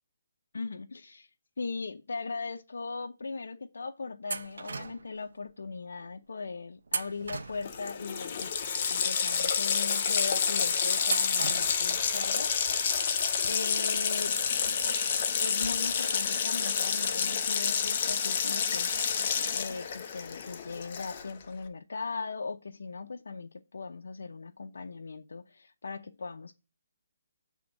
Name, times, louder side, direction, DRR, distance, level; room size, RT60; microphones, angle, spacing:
voice 1, 0.5-1.3 1.6-8.5 8.9-13.0 13.4-14.4 14.6-14.8 15.4-18.9 19.4-26.5, left 4 dB, 80° left, 0.5 m, -39 dB
sound 1, 4.3-5.2 6.9-8.0 11.0-12.0, right 4 dB, 85° right, 0.7 m, -36 dB
Water tap faucet, 7.3-7.4 7.6-21.4, left 6 dB, 35° left, 0.7 m, -29 dB
7.4 x 3.5 x 6.2 m
hypercardioid pair, 170°, 0 cm